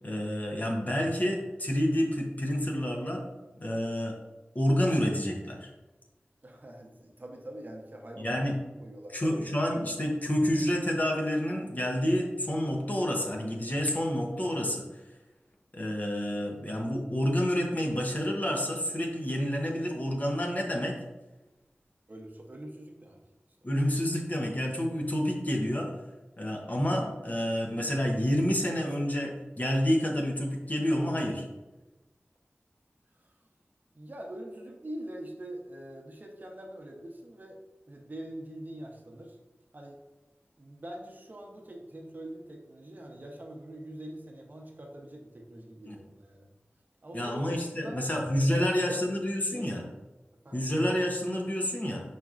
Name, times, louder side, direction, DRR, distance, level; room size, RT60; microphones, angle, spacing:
voice 1, 0.0-3.2 3.6-4.2 4.5-5.7 8.2-8.5 9.1-14.8 15.7-20.9 23.6-25.9 26.4-31.4 45.9-46.0 47.1-49.8 50.5-52.0, equal, 40° left, 0 dB, 0.8 m, -29 dB
voice 2, 6.4-8.4 8.8-9.3 22.1-23.2 23.6-23.7 33.2-33.3 33.9-37.6 37.9-39.4 39.7-40.0 40.6-46.5 47.0-48.0 48.3-49.7 50.4-50.6, right 1 dB, 45° right, 1 dB, 0.8 m, -44 dB
4.8 x 4.1 x 2.5 m, 1.1 s
wide cardioid pair, 70°, 4 cm